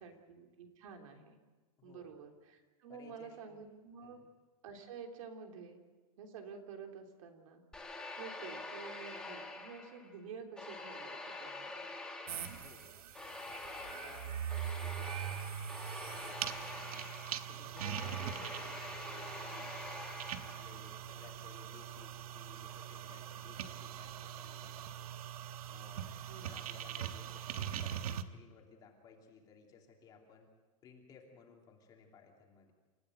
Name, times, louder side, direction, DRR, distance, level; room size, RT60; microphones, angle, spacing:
voice 1, 0.0-1.4 1.8-4.2 4.6-5.8 6.2-7.6 8.2-11.9 18.2-18.4 26.3-26.7, right 6 dB, 65° right, 3 dB, 3.4 m, -50 dB
voice 2, 1.8-2.2 2.9-3.6 4.0-4.3 12.6-12.9 13.2-14.4 14.8-17.1 17.5-19.7 20.4-25.2 25.7-30.5 30.8-32.7, left 5 dB, 20° left, 1 dB, 3.0 m, -59 dB
sound 1, 7.7-10.1 10.6-20.9, left 2 dB, 5° left, 1.6 m, -46 dB
sound 2, 12.3-28.2, right 10 dB, 85° right, 1.3 m, -42 dB
28.5 x 14.5 x 8.0 m, 1.3 s
supercardioid pair, 175°, 18 cm